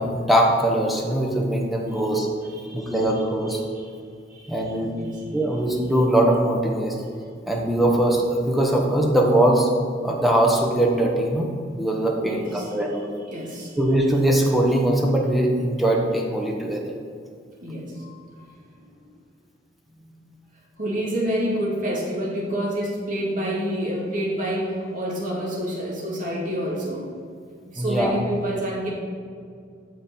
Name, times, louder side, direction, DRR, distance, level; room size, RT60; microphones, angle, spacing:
voice 1, 0.0-2.3 2.7-3.6 4.5-4.9 5.3-7.0 7.5-9.7 10.0-13.1 13.8-16.8 27.8-28.1, right 1 dB, ahead, -1 dB, 1.1 m, -21 dB
voice 2, 2.4-3.9 4.3-5.2 12.2-12.8 13.3-13.8 17.6-18.9 19.9-20.2 20.8-27.1 27.7-28.9, equal, 45° right, -4 dB, 2.4 m, -29 dB
9.0 x 6.7 x 4.5 m, 2.3 s
head